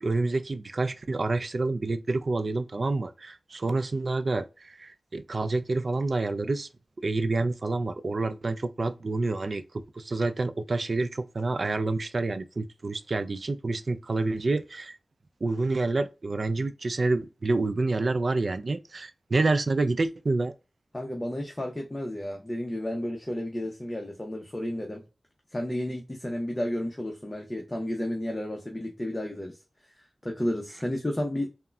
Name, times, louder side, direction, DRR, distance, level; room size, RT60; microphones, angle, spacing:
voice 1, 0.0-6.7 7.0-15.0 15.4-20.5, right 3 dB, 60° right, 0.3 m, -28 dB
voice 2, 20.9-25.0 25.5-29.6 29.8-29.9 30.2-31.5, left 1 dB, 25° left, 0.6 m, -32 dB
3.6 x 2.1 x 2.2 m
wide cardioid pair, 60°, 0 cm